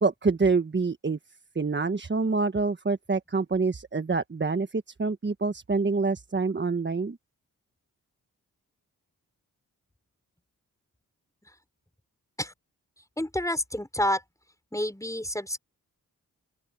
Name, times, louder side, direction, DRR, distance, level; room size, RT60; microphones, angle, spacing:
voice 1, 0.0-1.2 1.5-7.2, right 4 dB, 30° right, 1.4 m, -26 dB
voice 2, 13.2-14.2 14.7-15.6, left 1 dB, 10° left, 4.9 m, -29 dB
open air
cardioid pair, 55°, 36 cm